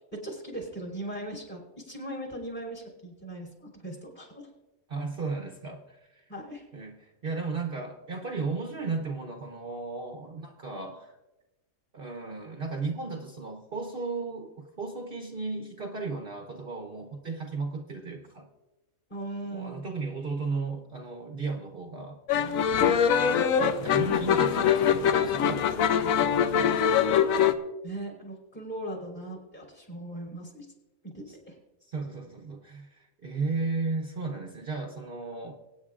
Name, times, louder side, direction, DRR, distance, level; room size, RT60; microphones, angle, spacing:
voice 1, 0.2-4.4 6.3-6.6 19.1-19.9 22.7-23.0 27.8-30.7 31.0-31.6, right 1 dB, 35° left, -2 dB, 3.5 m, -39 dB
voice 2, 4.9-6.2 6.7-11.1 11.9-18.5 19.4-22.2 23.6-27.1 31.3-31.4 31.8-35.5, right 4 dB, 45° right, 2 dB, 1.0 m, -35 dB
sound 1, 22.3-27.5, left 8 dB, 85° left, 1.1 m, -23 dB
23.5 x 9.2 x 2.5 m, 1.0 s
omnidirectional pair, 1.4 m